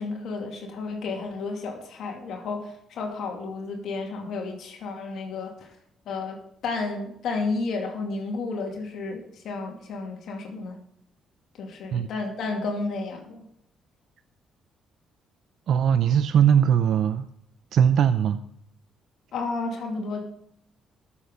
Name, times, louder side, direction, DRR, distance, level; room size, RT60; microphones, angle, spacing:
voice 1, 0.0-5.7 6.1-6.4 6.6-10.8 11.5-13.4 19.3-20.2, left 3 dB, 70° left, 1 dB, 2.5 m, -32 dB
voice 2, 15.7-17.3 17.7-18.4, right 8 dB, 65° right, 11 dB, 0.5 m, -20 dB
14.0 x 7.1 x 5.1 m, 0.71 s
cardioid pair, 100°, 0 cm